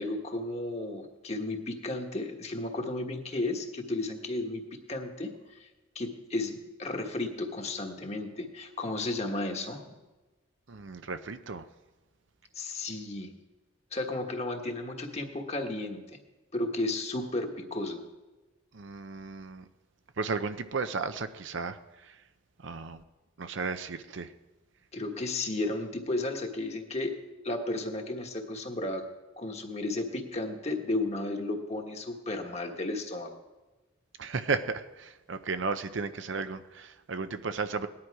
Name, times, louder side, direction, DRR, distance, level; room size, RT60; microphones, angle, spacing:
voice 1, 0.0-5.7 5.9-9.8 12.5-13.3 13.9-16.0 16.5-18.0 24.9-27.2 27.4-29.0 29.4-33.4, left 2 dB, 30° left, 3 dB, 1.4 m, -33 dB
voice 2, 10.7-11.7 18.7-19.6 20.2-22.2 22.6-23.0 23.4-24.3 34.2-37.9, right 4 dB, 60° right, 10 dB, 0.6 m, -34 dB
18.5 x 10.5 x 4.8 m, 1.2 s
head